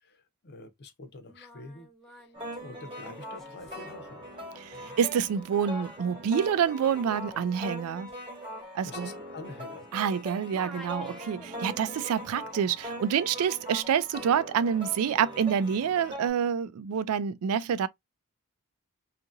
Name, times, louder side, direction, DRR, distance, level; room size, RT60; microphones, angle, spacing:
voice 1, 0.0-4.3 4.7-4.9 8.8-10.2, left 2 dB, 50° left, 0.6 m, -47 dB
Singing, 1.2-10.2 10.5-11.9, equal, ahead, 0.5 m, -52 dB
sound 1, 2.3-16.3, equal, 25° right, 1.1 m, -41 dB
voice 2, 4.6-8.1 8.7-9.1 9.9-17.9, right 7 dB, 70° right, 0.3 m, -27 dB
2.7 x 2.5 x 2.5 m
head